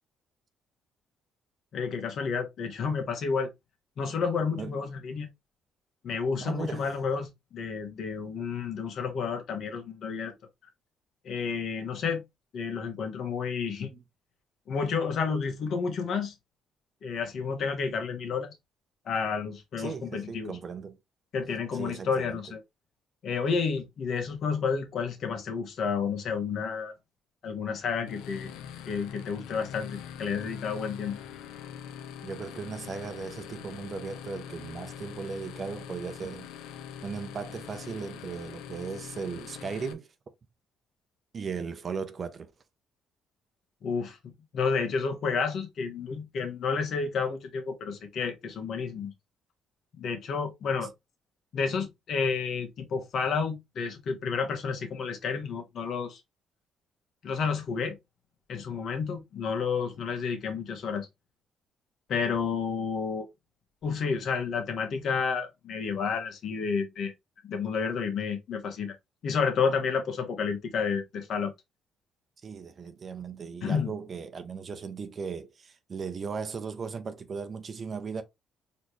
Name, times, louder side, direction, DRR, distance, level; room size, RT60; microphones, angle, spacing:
voice 1, 1.7-3.5 4.0-5.3 6.0-10.3 11.2-12.2 12.5-13.9 14.7-16.3 17.0-18.5 19.0-20.6 21.3-22.6 23.2-26.9 27.4-28.5 28.9-31.2 43.8-49.1 50.0-50.9 51.5-56.2 57.2-58.0 58.5-61.1 62.1-63.2 63.8-67.1 67.4-68.9 69.2-71.5 73.6-73.9, left 5 dB, 65° left, 1.4 m, -30 dB
voice 2, 6.4-6.9 13.9-14.0 19.8-21.0 21.7-22.4 32.2-36.5 37.0-40.1 41.3-42.5 72.4-78.2, right 5 dB, 45° right, 0.8 m, -37 dB
sound 1, 28.0-39.9, left 8 dB, 85° left, 0.6 m, -43 dB
4.1 x 3.2 x 3.1 m
supercardioid pair, 75°, 0 cm